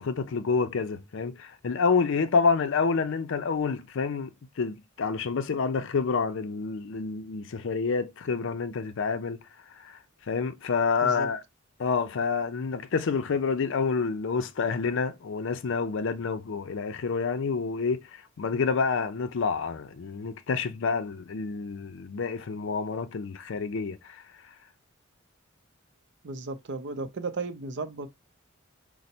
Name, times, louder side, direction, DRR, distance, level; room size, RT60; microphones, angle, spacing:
voice 1, 0.0-4.3 4.6-9.4 10.3-11.4 11.8-18.0 18.4-24.0, left 5 dB, 65° left, 0.5 m, -28 dB
voice 2, 26.2-28.1, right 3 dB, 60° right, 0.5 m, -35 dB
5.1 x 2.1 x 4.3 m
head